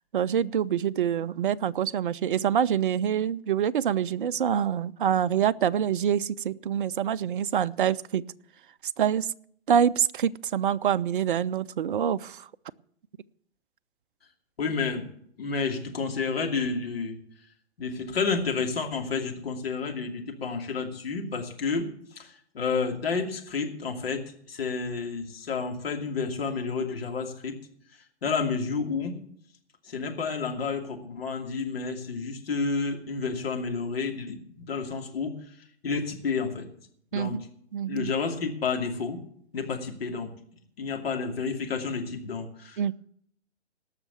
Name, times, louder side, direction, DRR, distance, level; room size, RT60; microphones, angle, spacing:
voice 1, 0.1-8.3 9.0-9.3 9.7-12.5 37.1-37.4 37.7-38.1 42.8-42.9, right 9 dB, 50° right, 15 dB, 0.5 m, -26 dB
voice 2, 14.6-15.1 15.4-17.2 17.8-27.5 28.2-29.2 29.8-35.4 35.8-36.7 37.1-37.5 37.9-39.2 39.5-40.3 40.8-42.9, left 5 dB, 60° left, 2 dB, 2.7 m, -30 dB
18.0 x 6.6 x 7.0 m, 0.64 s
figure-of-eight pair, 125°, 34 cm